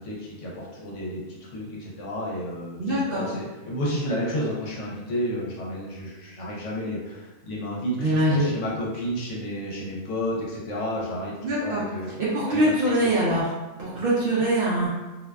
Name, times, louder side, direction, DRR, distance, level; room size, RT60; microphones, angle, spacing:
voice 1, 0.0-12.1 12.5-13.1, equal, 70° left, -4 dB, 0.9 m, -31 dB
voice 2, 2.8-3.2 8.0-8.5 11.4-11.8 12.2-13.5 13.8-14.9, right 1 dB, 60° right, -8 dB, 0.6 m, -23 dB
2.5 x 2.2 x 2.2 m, 1.1 s
omnidirectional pair, 1.4 m